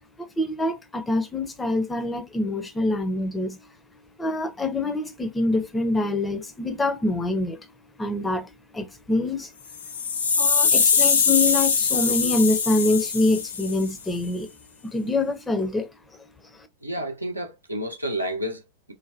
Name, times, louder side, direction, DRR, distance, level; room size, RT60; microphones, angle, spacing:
voice 1, 0.2-3.6 4.2-7.7 8.0-9.5 10.4-14.5 14.8-16.2 16.5-16.7, left 2 dB, 10° left, 0.5 m, -25 dB
sound 1, 9.7-13.9, left 5 dB, 65° left, 0.5 m, -22 dB
voice 2, 16.8-18.9, right 1 dB, 85° right, 0.6 m, -30 dB
3.2 x 2.1 x 2.5 m
figure-of-eight pair, 90°, 0 cm